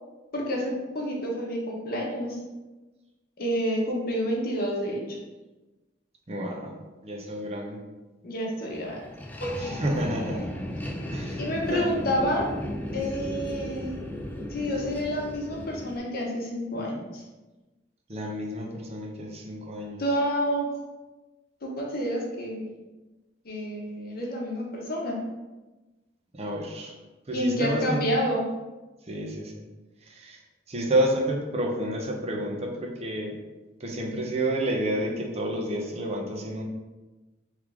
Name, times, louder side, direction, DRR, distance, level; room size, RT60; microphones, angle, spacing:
voice 1, 0.3-2.4 3.4-5.2 8.2-9.0 9.4-9.7 11.4-12.5 12.9-14.0 14.5-17.2 20.0-20.7 21.6-22.7 23.4-25.2 27.3-28.4, equal, 55° left, -2 dB, 0.9 m, -29 dB
voice 2, 6.3-6.7 7.0-7.8 9.8-10.5 11.1-11.4 11.7-11.8 18.1-20.0 26.3-26.9 27.3-28.0 29.1-29.6 30.1-30.4 30.7-33.4 33.8-36.6, right 1 dB, 35° right, 0 dB, 0.7 m, -29 dB
sound 1, 8.7-16.0, left 1 dB, 10° left, 0.4 m, -35 dB
3.6 x 3.2 x 3.6 m, 1.1 s
head